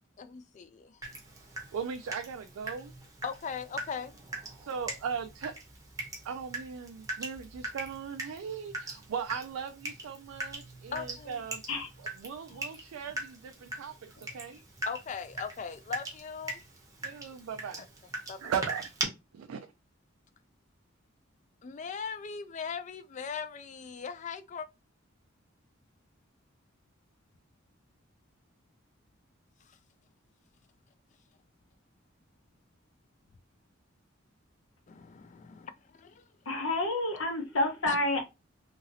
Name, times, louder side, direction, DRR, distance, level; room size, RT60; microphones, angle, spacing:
voice 1, 0.2-1.0 3.2-4.1 10.9-11.4 14.9-16.6 18.3-18.5 21.6-24.7 29.7-29.8 34.9-36.2 37.9-38.0, left 6 dB, 35° left, 0.3 m, -39 dB
Water tap faucet / Drip, 1.0-19.0, right 2 dB, 15° right, 0.7 m, -41 dB
voice 2, 1.7-2.9 4.6-5.6 6.2-11.6 12.0-14.6 17.0-17.8 18.4-18.9 19.3-19.6, right 7 dB, 85° right, 0.3 m, -38 dB
voice 3, 36.5-38.2, left 2 dB, 75° left, 0.8 m, -29 dB
2.9 x 2.7 x 2.6 m
head